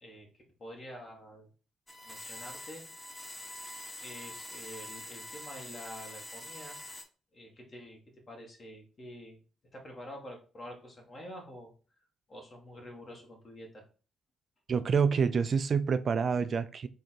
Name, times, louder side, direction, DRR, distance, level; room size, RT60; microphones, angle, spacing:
voice 1, 0.0-1.5 2.0-2.9 4.0-6.8 7.3-8.0 8.3-9.4 9.7-11.7 12.3-13.8, equal, 40° left, 1 dB, 1.7 m, -47 dB
sound 1, 1.9-7.0, left 1 dB, 15° left, 1.2 m, -45 dB
voice 2, 14.7-16.9, right 6 dB, 50° right, 13 dB, 0.3 m, -27 dB
3.7 x 2.6 x 4.4 m, 0.37 s
hypercardioid pair, 45°, 0 cm